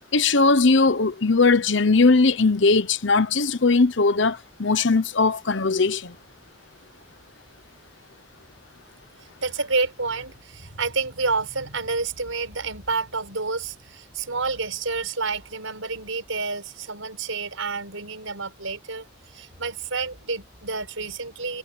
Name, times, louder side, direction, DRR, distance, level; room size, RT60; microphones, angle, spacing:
voice 1, 0.1-6.1, left 3 dB, 65° left, 0.9 m, -19 dB
voice 2, 9.4-19.1 19.3-21.6, right 4 dB, 85° right, 5.8 m, -29 dB
head